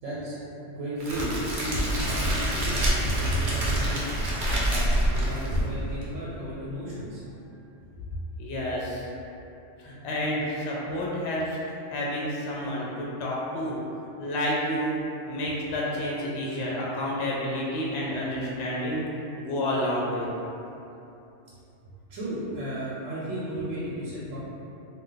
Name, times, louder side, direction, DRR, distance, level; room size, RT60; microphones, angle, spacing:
voice 1, 0.0-0.4 0.7-4.1 4.7-7.2 11.4-11.5 22.1-24.4, equal, 85° right, -9 dB, 1.0 m, -34 dB
Crackle, 1.0-6.0, right 1 dB, 55° right, 0.6 m, -26 dB
voice 2, 8.4-9.1 9.8-11.6 11.9-13.8 14.2-15.0 15.3-19.1 19.4-20.3, left 1 dB, 65° left, -5 dB, 0.7 m, -29 dB
2.4 x 2.2 x 3.7 m, 2.8 s
omnidirectional pair, 1.3 m